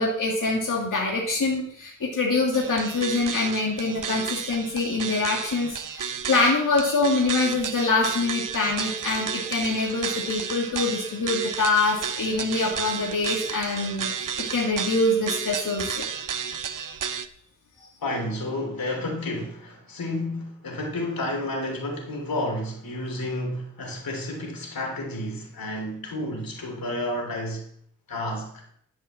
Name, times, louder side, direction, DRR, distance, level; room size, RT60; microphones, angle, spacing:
voice 1, 0.0-16.0 17.8-17.9, left 3 dB, 65° left, -3 dB, 2.6 m, -25 dB
sound 1, 2.5-17.3, right 7 dB, 65° right, 0.8 m, -32 dB
voice 2, 18.0-27.6 28.1-28.5, left 1 dB, 85° left, 1 dB, 3.5 m, -31 dB
11.0 x 7.2 x 7.4 m, 0.66 s
wide cardioid pair, 95°, 34 cm